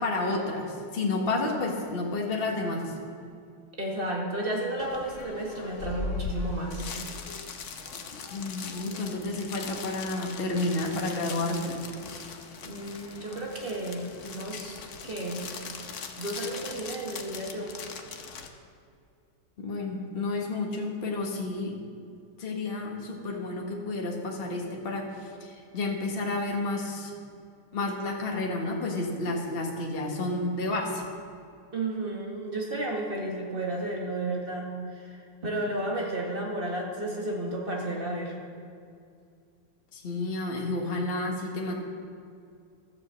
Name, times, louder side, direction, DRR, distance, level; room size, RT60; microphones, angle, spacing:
voice 1, 0.0-2.9 8.1-11.8 19.6-21.8 22.4-27.1 27.7-31.0 39.9-41.7, left 2 dB, 30° left, 0 dB, 1.5 m, -31 dB
voice 2, 3.8-6.8 12.2-12.3 12.6-15.5 16.2-17.7 31.7-38.4, right 1 dB, 25° right, -1 dB, 1.8 m, -33 dB
sound 1, 4.8-18.5, left 4 dB, 60° left, 0.8 m, -40 dB
12.5 x 8.2 x 7.5 m, 2.3 s
omnidirectional pair, 2.4 m